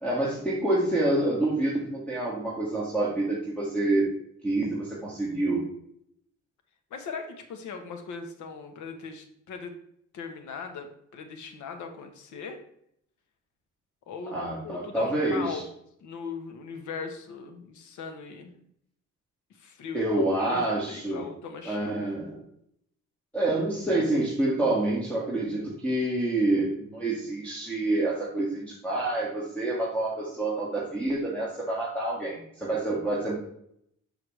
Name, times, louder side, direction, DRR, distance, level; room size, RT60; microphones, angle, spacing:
voice 1, 0.0-4.1 4.4-5.6 14.3-15.6 19.9-21.2 21.7-22.4 23.3-33.4, right 2 dB, 5° left, -6 dB, 2.1 m, -27 dB
voice 2, 6.9-9.8 10.1-12.6 14.1-15.6 16.0-18.6 19.5-20.0 20.4-22.1, left 5 dB, 75° left, 6 dB, 1.3 m, -39 dB
7.0 x 6.4 x 3.3 m, 0.72 s
cardioid pair, 90°, 30 cm